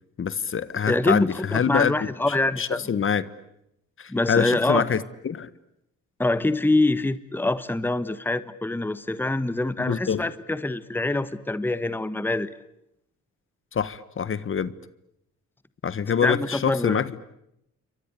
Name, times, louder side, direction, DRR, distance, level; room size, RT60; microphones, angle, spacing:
voice 1, 0.2-1.9 2.6-3.2 4.0-5.5 9.8-10.2 13.7-14.7 15.8-17.2, left 7 dB, 45° left, 1.4 m, -25 dB
voice 2, 0.9-2.8 4.1-4.8 6.2-12.5 16.2-17.0, left 2 dB, 5° left, 1.3 m, -25 dB
28.5 x 24.5 x 8.4 m
cardioid pair, 90°, 30 cm